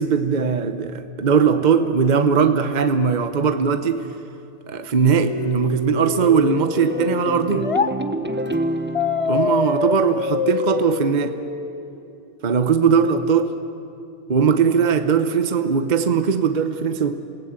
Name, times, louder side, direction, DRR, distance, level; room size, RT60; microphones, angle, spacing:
voice 1, 0.0-4.1 4.7-7.7 9.3-11.4 12.4-13.5 14.3-17.2, right 6 dB, 45° right, 9 dB, 1.0 m, -19 dB
sound 1, 5.1-7.9 8.9-11.9, left 4 dB, 35° left, 0.7 m, -25 dB
sound 2, 5.3-10.6, right 1 dB, 10° right, 0.9 m, -29 dB
28.0 x 18.5 x 8.8 m, 2.7 s
omnidirectional pair, 1.2 m